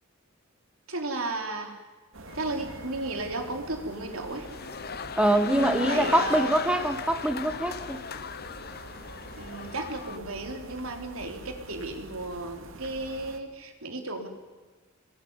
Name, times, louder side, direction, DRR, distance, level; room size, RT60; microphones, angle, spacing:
voice 1, 0.9-1.7 2.3-4.5 5.4-6.6 9.4-14.3, right 2 dB, 90° right, 4 dB, 4.0 m, -34 dB
sound 1, 2.1-13.4, right 2 dB, 70° right, 2.6 m, -46 dB
sound 2, 2.3-10.2, left 6 dB, 50° left, 0.9 m, -37 dB
voice 2, 5.2-8.0, right 1 dB, 5° right, 7 dB, 1.6 m, -24 dB
26.5 x 21.5 x 9.8 m, 1.3 s
head